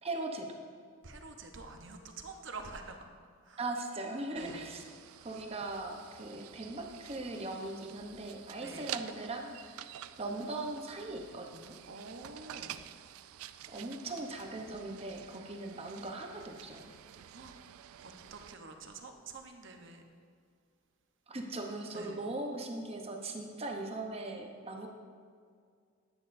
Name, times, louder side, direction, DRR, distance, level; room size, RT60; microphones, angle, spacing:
voice 1, 0.0-0.5 3.6-4.8 5.2-9.9 10.2-11.8 13.7-16.9 21.3-24.9, right 2 dB, 30° right, 2 dB, 0.8 m, -39 dB
voice 2, 1.0-3.0 3.4-3.6 4.3-4.7 8.6-9.0 11.9-12.8 17.3-17.6 18.0-20.0 21.9-22.2, right 3 dB, 60° right, 4 dB, 0.8 m, -47 dB
sound 1, 4.4-18.5, right 11 dB, 85° right, 0.3 m, -49 dB
10.5 x 9.8 x 2.6 m, 2.1 s
head